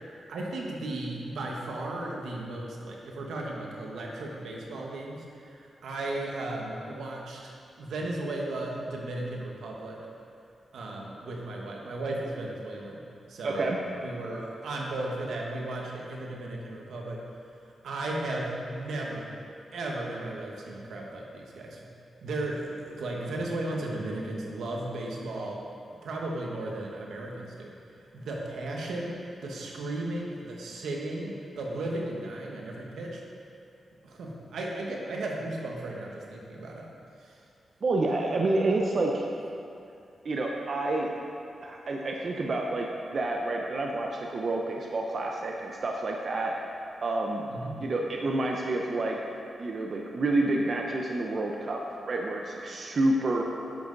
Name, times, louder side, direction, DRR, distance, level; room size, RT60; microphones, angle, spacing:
voice 1, 0.1-10.0 10.7-13.0 13.3-13.7 14.0-17.2 17.8-19.3 19.7-21.9 22.2-25.6 26.0-27.7 28.1-33.2 34.0-36.8 37.2-37.4 47.5-47.7, right 2 dB, 90° right, -1 dB, 1.4 m, -35 dB
voice 2, 13.4-13.8 37.8-39.3 40.2-41.1 41.6-47.5 47.8-49.2 49.6-53.4, right 2 dB, 50° right, 0 dB, 0.8 m, -29 dB
10.5 x 7.7 x 4.0 m, 2.5 s
cardioid pair, 105°, 0 cm